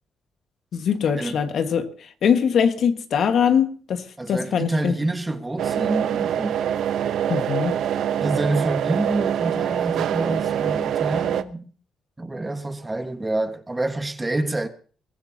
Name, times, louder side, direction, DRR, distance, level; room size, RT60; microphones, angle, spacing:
voice 1, 0.7-5.0 7.3-7.7, left 7 dB, 65° left, 1.7 m, -22 dB
voice 2, 4.2-6.6 8.2-11.7 12.2-14.7, right 2 dB, 15° right, 1.5 m, -27 dB
sound 1, 5.6-11.4, right 10 dB, 75° right, 0.9 m, -24 dB
22.5 x 15.0 x 2.9 m
cardioid pair, 90°, 0 cm